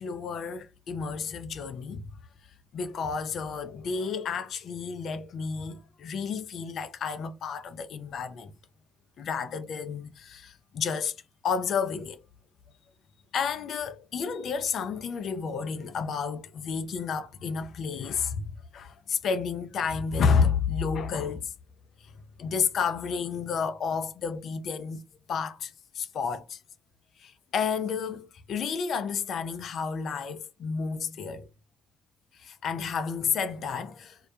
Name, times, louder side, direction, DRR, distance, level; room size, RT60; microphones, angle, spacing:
voice 1, 0.0-2.0 2.7-8.5 9.2-11.2 11.4-12.2 13.3-21.5 22.4-25.0 25.3-26.6 27.2-31.5 32.4-34.2, left 6 dB, 60° left, 0.4 m, -31 dB
2.2 x 2.1 x 2.6 m
hypercardioid pair, 50°, 0 cm